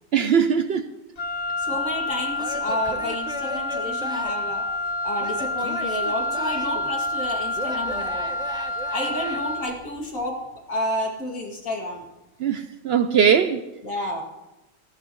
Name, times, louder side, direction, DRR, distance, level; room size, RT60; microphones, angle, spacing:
voice 1, 0.1-0.9 12.4-13.6, right 7 dB, 60° right, 0.8 m, -20 dB
Wind instrument woodwind instrument, 1.2-9.9, left 2 dB, 35° left, 0.8 m, -28 dB
voice 2, 1.6-4.6 5.0-8.3 8.9-10.4 10.7-12.0 13.8-14.2, left 1 dB, 90° left, 3.0 m, -30 dB
Male speech man speaking / Yell / Laughter, 2.3-4.5 5.2-6.9 7.5-9.4, equal, 5° right, 0.7 m, -37 dB
19.0 x 15.5 x 3.1 m
omnidirectional pair, 1.4 m